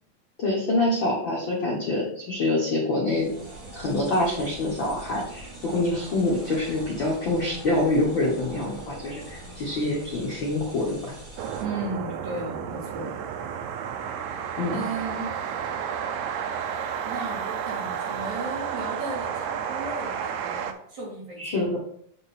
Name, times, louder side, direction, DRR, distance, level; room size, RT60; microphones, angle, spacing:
voice 1, 0.4-3.3 3.7-11.1 14.6-14.8 21.4-21.8, left 2 dB, 55° left, -4 dB, 1.4 m, -26 dB
sound 1, 3.1-11.6, right 1 dB, 25° right, 2.4 m, -42 dB
sound 2, 11.4-20.7, right 7 dB, 90° right, 1.5 m, -31 dB
voice 2, 11.6-13.2 14.7-15.3 17.0-21.6, right 3 dB, 55° right, -6 dB, 4.0 m, -35 dB
8.2 x 3.8 x 4.2 m, 0.65 s
omnidirectional pair, 4.0 m